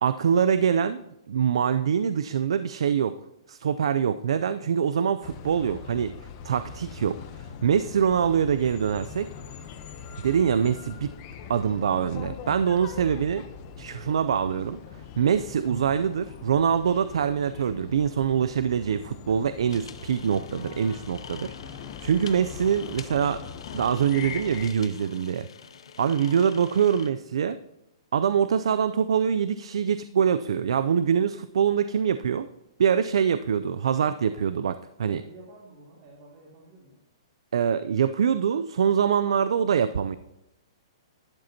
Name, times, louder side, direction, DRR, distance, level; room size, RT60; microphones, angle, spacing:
voice 1, 0.0-3.1 3.5-6.1 6.4-9.3 10.2-11.1 11.5-13.5 13.8-14.8 15.2-23.4 23.7-25.5 26.0-27.6 28.1-32.5 32.8-35.2 37.5-40.2, right 7 dB, 80° right, 12 dB, 0.4 m, -24 dB
sound 1, 5.2-24.7, left 6 dB, 30° left, 0.7 m, -42 dB
sound 2, 19.7-27.1, left 7 dB, 75° left, 0.6 m, -46 dB
voice 2, 21.4-21.7 22.4-22.6 35.2-37.0, right 2 dB, 40° right, -4 dB, 2.0 m, -52 dB
12.0 x 7.6 x 2.8 m, 0.91 s
hypercardioid pair, 165°, 3 cm